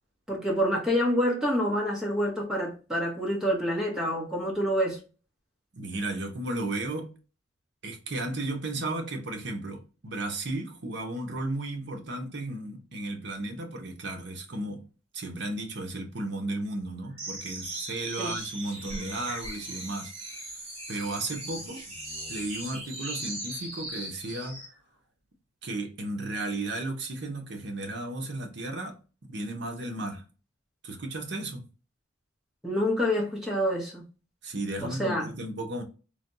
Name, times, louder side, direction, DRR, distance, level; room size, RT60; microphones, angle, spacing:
voice 1, 0.3-5.0 18.2-18.3 32.6-34.0 34.8-35.3, equal, 5° right, 1.0 m, -27 dB
voice 2, 5.7-7.2 7.8-14.9 15.1-20.5 20.9-21.8 22.3-24.6 25.6-30.2 30.8-31.7 34.4-35.8, right 2 dB, 60° right, 0.7 m, -34 dB
sound 1, 17.2-24.7, right 1 dB, 30° right, 1.3 m, -39 dB
3.3 x 2.2 x 2.6 m
head